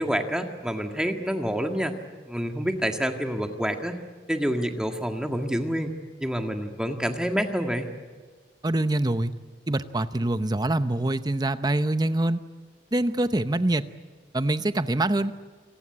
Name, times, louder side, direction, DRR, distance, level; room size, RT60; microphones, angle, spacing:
voice 1, 0.0-2.0 2.3-4.0 4.3-5.9 6.2-7.9, equal, 5° right, 4 dB, 1.7 m, -27 dB
voice 2, 8.6-9.3 9.7-12.4 12.9-13.8 14.3-15.3, right 1 dB, 25° right, 12 dB, 0.8 m, -24 dB
28.0 x 18.5 x 9.8 m, 1.5 s
head